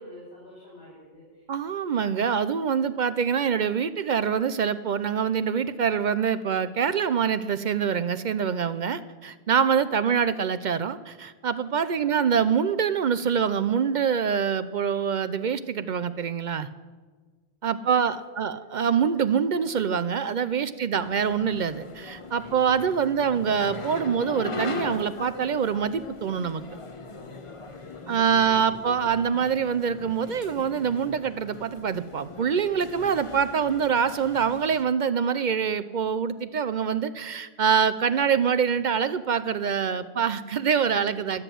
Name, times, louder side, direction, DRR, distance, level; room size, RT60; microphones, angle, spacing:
voice 1, 0.0-1.4 10.0-10.4 11.9-12.4 17.7-18.6 20.6-20.9 22.4-23.3 27.8-29.0 40.0-40.3 41.3-41.4, left 1 dB, 90° left, -8 dB, 5.4 m, -48 dB
voice 2, 1.5-16.7 17.6-26.6 28.1-41.4, right 7 dB, 55° right, 13 dB, 0.6 m, -25 dB
sound 1, 21.0-34.8, left 3 dB, 35° left, 0.9 m, -40 dB
13.0 x 8.0 x 9.1 m, 1.4 s
omnidirectional pair, 1.0 m